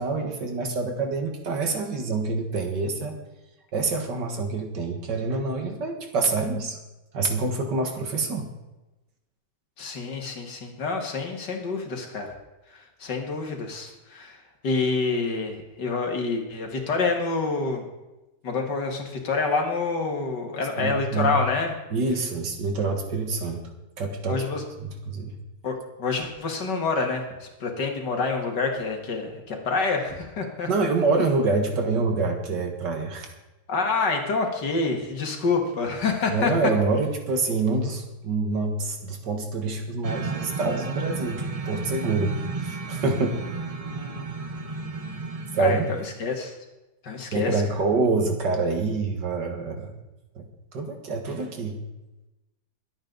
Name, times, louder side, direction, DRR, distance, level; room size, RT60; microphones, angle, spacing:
voice 1, 0.0-3.2 3.7-6.8 7.1-8.5 20.8-21.3 21.9-23.7 24.0-24.4 24.8-25.4 30.7-33.3 36.3-43.4 45.5-45.9 47.3-49.9 50.4-51.8, right 3 dB, 85° right, 4 dB, 2.4 m, -26 dB
voice 2, 9.8-12.3 12.7-14.4 14.6-17.8 18.4-21.7 24.3-24.6 25.6-30.7 33.7-36.5 43.8-44.2 45.6-46.5 47.0-47.5, left 4 dB, 85° left, 3 dB, 2.6 m, -27 dB
sound 1, 40.0-46.2, right 4 dB, 30° right, 0.6 m, -33 dB
22.5 x 8.9 x 4.0 m, 1.0 s
omnidirectional pair, 1.8 m